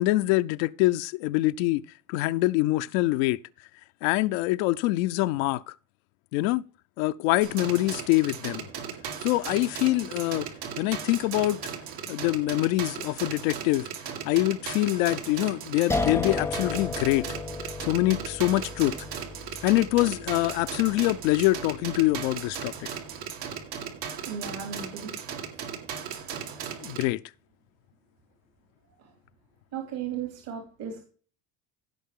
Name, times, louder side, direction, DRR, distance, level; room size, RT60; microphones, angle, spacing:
voice 1, 0.0-1.8 2.1-3.4 4.0-5.7 6.3-6.7 7.0-8.7 9.2-10.5 10.8-11.6 12.1-13.9 14.2-17.3 17.8-19.0 19.6-22.9 26.8-27.2, left 18 dB, 85° left, 0.6 m, -25 dB
sound 1, 7.4-27.0, right 7 dB, 85° right, 2.4 m, -37 dB
sound 2, 15.9-22.8, left 3 dB, 5° left, 0.4 m, -34 dB
voice 2, 24.2-25.1 25.6-25.7 29.7-31.0, right 7 dB, 65° right, 2.9 m, -35 dB
15.5 x 5.7 x 3.7 m
supercardioid pair, 105°, 39 cm